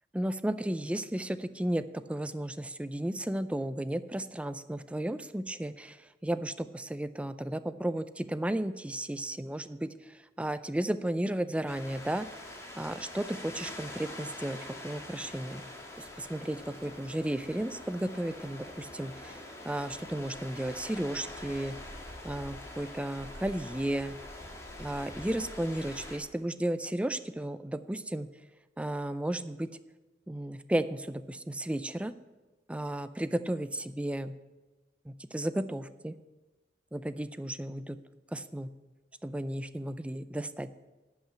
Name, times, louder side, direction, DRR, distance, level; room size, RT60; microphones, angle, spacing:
voice 1, 0.1-12.3 12.8-14.6 14.8-15.6 16.0-19.4 19.6-21.7 22.2-24.2 24.8-28.3 28.8-29.7 30.3-32.1 32.7-34.3 35.1-36.2 36.9-38.0 38.3-38.7 39.2-40.8, right 1 dB, 5° right, 12 dB, 0.4 m, -34 dB
sound 1, 11.7-26.2, left 1 dB, 15° left, 1.6 m, -45 dB
11.5 x 5.7 x 8.7 m, 1.2 s
head